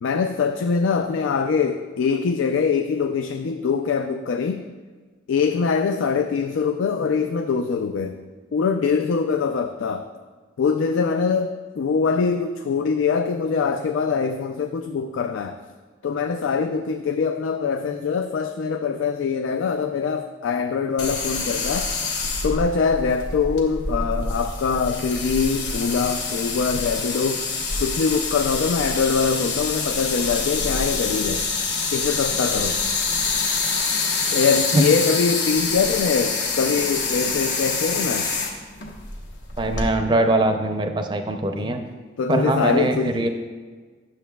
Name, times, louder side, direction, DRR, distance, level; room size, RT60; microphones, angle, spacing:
voice 1, 0.0-4.6 5.3-8.2 8.5-10.1 10.6-15.6 16.0-21.9 22.4-27.5 27.8-31.4 31.9-32.8 34.3-38.3 41.6-41.7 42.2-43.3, left 5 dB, 85° left, 6 dB, 0.3 m, -23 dB
sound 1, 21.0-39.9, left 4 dB, 70° left, 1.0 m, -26 dB
voice 2, 39.6-41.8 42.3-43.3, right 2 dB, 25° right, 6 dB, 0.4 m, -22 dB
10.5 x 7.1 x 2.3 m, 1.4 s
head